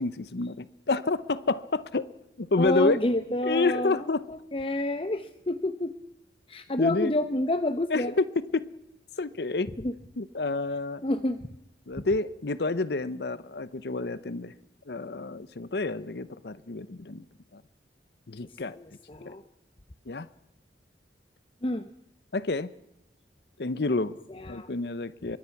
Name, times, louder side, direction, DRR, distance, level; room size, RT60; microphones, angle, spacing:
voice 1, 0.0-2.1 2.4-3.0 3.4-4.2 6.8-7.1 7.9-8.3 8.5-8.7 9.2-9.7 10.2-11.0 11.9-14.5 14.9-17.2 17.5-17.6 18.3-18.7 19.3-19.4 20.1-20.3 22.3-22.7 23.6-24.2 24.5-25.4, left 3 dB, 65° left, 16 dB, 0.8 m, -29 dB
voice 2, 2.6-4.0 4.3-6.0 6.5-8.2 9.8-9.9 11.0-11.5 18.5-19.4 21.6-21.9 24.3-24.7, left 1 dB, 30° left, 10 dB, 0.8 m, -29 dB
25.5 x 22.5 x 5.9 m, 0.84 s
head